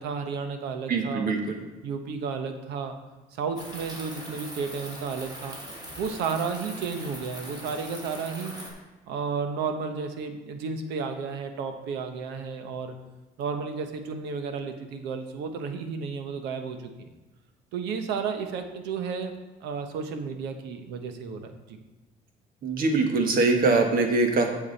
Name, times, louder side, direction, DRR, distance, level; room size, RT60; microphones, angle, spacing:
voice 1, 0.0-1.3 1.8-2.9 3.4-5.6 6.0-8.5 9.1-13.0 13.4-16.9 17.7-19.3 19.6-21.8, right 5 dB, 90° right, 7 dB, 1.0 m, -32 dB
voice 2, 0.9-1.6 22.6-24.5, right 3 dB, 60° right, 4 dB, 1.5 m, -23 dB
sound 1, 3.6-8.7, right 1 dB, 25° right, 2.8 m, -41 dB
8.8 x 7.2 x 4.1 m, 1.1 s
cardioid pair, 110°, 17 cm